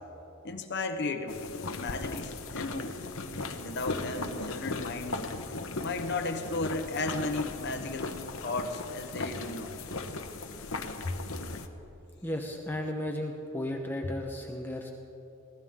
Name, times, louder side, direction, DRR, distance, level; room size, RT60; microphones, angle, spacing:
voice 1, 0.4-3.0 3.5-5.2 5.8-9.8 11.0-11.1, left 3 dB, 55° left, 6 dB, 1.0 m, -34 dB
sound 1, 1.3-11.7, left 3 dB, 80° left, 1.1 m, -38 dB
voice 2, 12.2-14.9, left 1 dB, 10° left, 1 dB, 1.0 m, -34 dB
22.5 x 17.0 x 3.7 m, 3.0 s
head